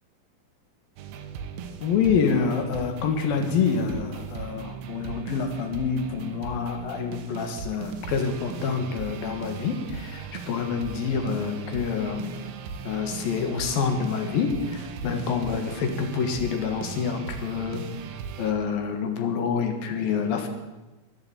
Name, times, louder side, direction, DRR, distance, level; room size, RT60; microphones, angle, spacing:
sound 1, 1.0-18.5, right 6 dB, 85° right, 3.1 m, -38 dB
voice 1, 1.8-12.4 12.8-17.9 18.4-20.5, left 6 dB, 70° left, 5 dB, 3.3 m, -27 dB
13.5 x 11.0 x 8.7 m, 1.1 s
omnidirectional pair, 4.4 m